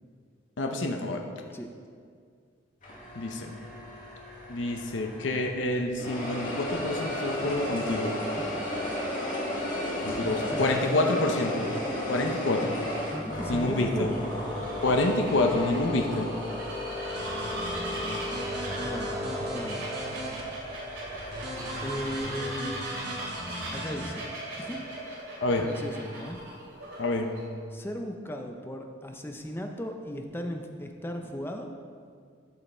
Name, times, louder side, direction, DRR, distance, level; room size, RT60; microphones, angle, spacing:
voice 1, 0.6-1.2 3.2-3.6 4.5-8.1 10.0-11.7 12.1-12.8 13.5-14.1 14.8-16.3 25.4-25.6 27.0-27.3, left 2 dB, 70° left, 3 dB, 0.7 m, -27 dB
sound 1, 2.8-5.6 6.0-22.2, left 1 dB, 40° left, 1.9 m, -34 dB
voice 2, 8.4-8.7 10.1-10.7 13.1-14.3 18.8-19.2 19.5-19.9 21.1-22.8 23.7-24.3 24.6-24.8 25.6-26.4 27.7-31.7, equal, 10° left, 4 dB, 0.5 m, -37 dB
Bird vocalization bird call bird song, 12.4-27.4, right 1 dB, 80° right, 2.6 m, -39 dB
sound 2, 17.0-20.4 21.3-24.1, equal, 55° right, 1.5 m, -38 dB
12.0 x 5.6 x 4.3 m, 2.1 s
head